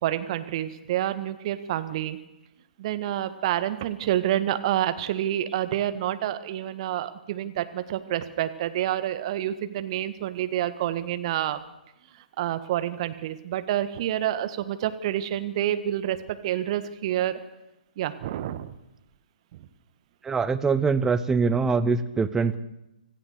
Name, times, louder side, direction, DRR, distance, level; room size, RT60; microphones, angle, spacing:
voice 1, 0.0-2.2 2.8-11.6 12.4-17.4 18.0-18.7 19.5-19.6, right 12 dB, 40° right, 11 dB, 1.6 m, -28 dB
voice 2, 20.2-22.6, right 4 dB, 10° right, 12 dB, 0.9 m, -23 dB
25.5 x 15.5 x 6.8 m, 0.92 s
figure-of-eight pair, 125°, 5 cm